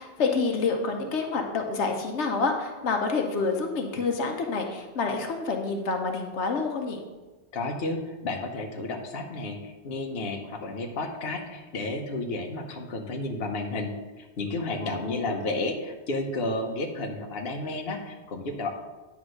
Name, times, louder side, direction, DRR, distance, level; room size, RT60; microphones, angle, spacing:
voice 1, 0.0-7.0 14.8-15.3, left 4 dB, 90° left, 3 dB, 1.2 m, -28 dB
voice 2, 7.5-18.7, left 2 dB, 65° left, 2 dB, 1.1 m, -32 dB
9.6 x 3.5 x 6.4 m, 1.2 s
omnidirectional pair, 1.1 m